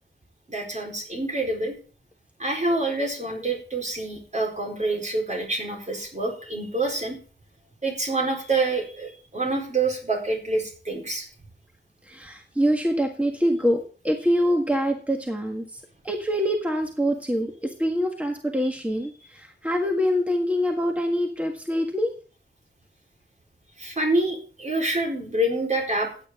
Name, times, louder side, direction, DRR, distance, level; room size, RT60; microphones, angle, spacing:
voice 1, 0.5-1.7 2.4-7.2 7.8-11.3 23.8-26.1, right 2 dB, 40° right, 1 dB, 4.2 m, -27 dB
voice 2, 12.0-22.1, equal, 5° right, 2 dB, 1.6 m, -25 dB
15.0 x 9.1 x 3.7 m, 0.39 s
wide cardioid pair, 100°, 18 cm